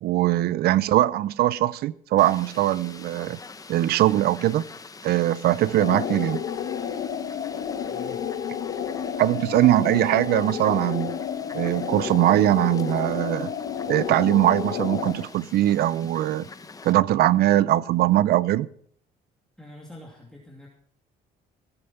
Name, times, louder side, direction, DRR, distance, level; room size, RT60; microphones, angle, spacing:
voice 1, 0.0-3.4 3.7-4.6 5.0-6.4 9.2-11.2 11.5-13.5 13.9-16.5 16.8-18.7, right 14 dB, 70° right, 0.6 m, -21 dB
Fowl, 2.2-16.9, left 4 dB, 20° left, 1.0 m, -45 dB
sound 1, 5.6-15.2, left 8 dB, 60° left, 1.5 m, -31 dB
voice 2, 7.8-8.3 19.6-20.7, left 1 dB, 5° left, 2.6 m, -45 dB
16.5 x 8.8 x 5.8 m
cardioid pair, 110°, 17 cm